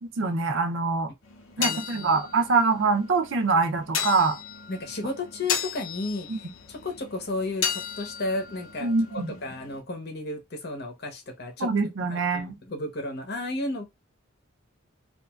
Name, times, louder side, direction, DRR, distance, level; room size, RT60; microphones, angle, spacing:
voice 1, 0.0-1.1 1.6-4.4 6.3-6.4 8.8-9.4 11.6-12.6, right 4 dB, 65° right, 0.5 m, -24 dB
sound 1, 1.2-9.8, left 7 dB, 80° left, 0.7 m, -35 dB
voice 2, 4.7-6.3 6.7-11.7 12.1-13.8, left 2 dB, 50° left, 0.8 m, -33 dB
2.9 x 2.5 x 2.3 m
head